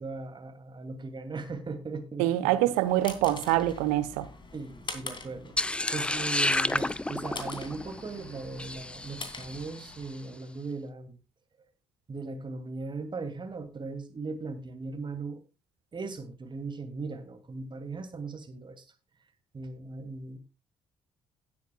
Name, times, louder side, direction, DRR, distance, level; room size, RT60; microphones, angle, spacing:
voice 1, 0.0-2.7 4.5-11.2 12.1-15.4 15.9-18.8 19.5-20.4, right 3 dB, 35° right, 2.5 m, -38 dB
voice 2, 2.2-4.3, right 15 dB, 65° right, 1.0 m, -25 dB
sound 1, 2.5-10.3, left 3 dB, 35° left, 2.7 m, -44 dB
sound 2, 5.6-9.9, left 2 dB, 5° left, 0.4 m, -31 dB
17.5 x 8.4 x 2.3 m
figure-of-eight pair, 40°, 14 cm